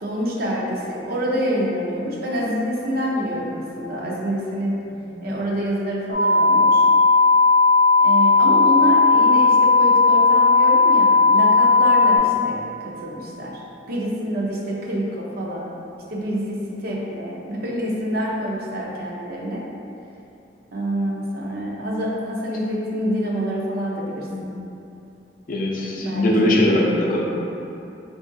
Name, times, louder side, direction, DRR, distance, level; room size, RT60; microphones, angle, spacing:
voice 1, 0.0-4.8 5.2-6.8 8.0-13.6 13.9-15.8 16.1-19.7 20.7-24.3 26.0-26.7, equal, 55° right, -3 dB, 0.5 m, -27 dB
voice 2, 4.9-5.4 12.3-12.5 24.3-24.4 25.5-27.2, left 1 dB, 50° left, -3 dB, 0.5 m, -21 dB
sound 1, 6.1-12.2, left 3 dB, 30° left, 0.8 m, -15 dB
4.6 x 2.4 x 2.5 m, 2.8 s
head